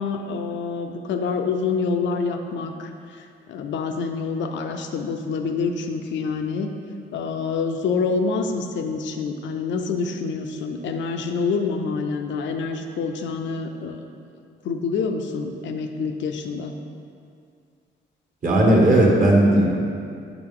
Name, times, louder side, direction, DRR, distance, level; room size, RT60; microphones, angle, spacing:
voice 1, 0.0-6.7 7.1-14.0 14.6-16.8, left 4 dB, 70° left, 5 dB, 0.5 m, -27 dB
voice 2, 18.4-19.8, right 1 dB, 40° right, -2 dB, 1.3 m, -16 dB
5.3 x 4.8 x 3.7 m, 2.3 s
cardioid pair, 90°, 20 cm